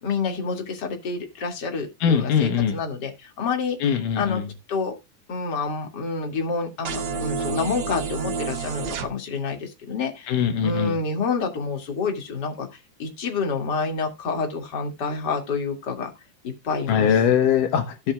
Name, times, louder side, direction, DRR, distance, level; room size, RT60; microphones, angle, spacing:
voice 1, 0.0-3.8 4.2-4.4 4.7-4.9 5.3-16.1 16.4-17.2, left 4 dB, 35° left, 2.6 m, -28 dB
voice 2, 2.0-2.8 3.8-4.5 10.3-11.0 16.9-18.1, left 8 dB, 80° left, 2.8 m, -21 dB
sound 1, 6.8-9.1, right 5 dB, 65° right, 1.1 m, -29 dB
16.0 x 7.3 x 2.4 m
omnidirectional pair, 3.7 m